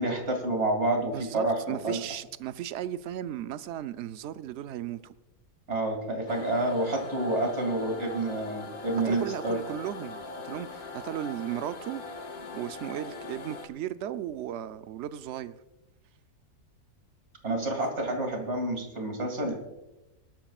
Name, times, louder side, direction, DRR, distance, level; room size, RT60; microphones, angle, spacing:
voice 1, 0.0-2.0 5.7-9.6 17.4-19.5, right 2 dB, 45° right, 2.6 m, -29 dB
voice 2, 1.0-5.1 9.0-12.0 12.5-15.6, right 11 dB, 65° right, 0.7 m, -36 dB
sound 1, 6.3-13.7, left 3 dB, 75° left, 1.7 m, -41 dB
21.0 x 11.5 x 2.4 m
omnidirectional pair, 1.6 m